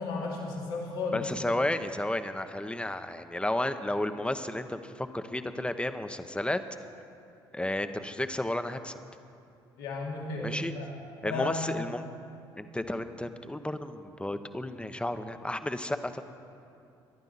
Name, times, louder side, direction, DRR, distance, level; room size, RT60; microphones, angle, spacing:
voice 1, 0.0-1.2 9.8-10.9 11.2-11.9, left 3 dB, 85° left, -4 dB, 2.5 m, -33 dB
voice 2, 1.1-6.6 7.5-8.9 10.4-10.7 11.2-12.0 12.6-16.2, left 1 dB, 10° left, 9 dB, 0.9 m, -32 dB
23.0 x 11.0 x 4.1 m, 2.6 s
hypercardioid pair, 50°, 12 cm